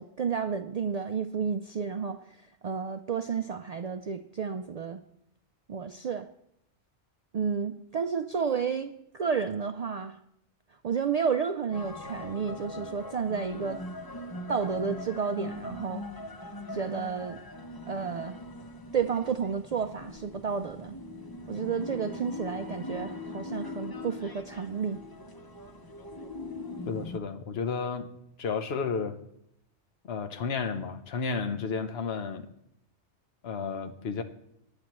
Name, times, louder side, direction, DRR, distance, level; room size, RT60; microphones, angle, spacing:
voice 1, 0.0-5.0 5.7-6.3 7.3-10.2 10.8-13.8 14.5-16.1 16.7-17.4 17.9-18.4 18.9-21.0 21.5-25.0, right 6 dB, 90° right, 8 dB, 0.3 m, -31 dB
sound 1, 11.7-27.2, left 2 dB, 25° left, 0.7 m, -41 dB
voice 2, 26.9-28.1 28.4-29.2 30.0-32.5 33.4-34.2, left 5 dB, 60° left, 7 dB, 1.1 m, -32 dB
18.5 x 9.6 x 3.1 m, 0.79 s
omnidirectional pair, 1.2 m